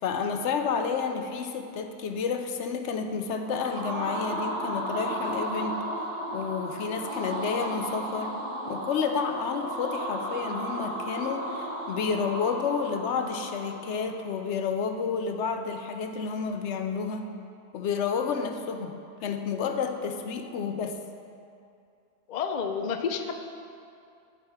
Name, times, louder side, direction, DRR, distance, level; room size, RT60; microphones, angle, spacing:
voice 1, 0.0-5.8 6.3-8.4 8.7-17.3 17.7-18.9 19.2-21.0, left 6 dB, 75° left, 6 dB, 0.9 m, -30 dB
sound 1, 3.3-14.2, right 1 dB, 65° right, 2.0 m, -34 dB
voice 2, 22.3-23.3, left 6 dB, 55° left, 6 dB, 0.5 m, -30 dB
8.3 x 5.0 x 5.7 m, 2.5 s
omnidirectional pair, 1.2 m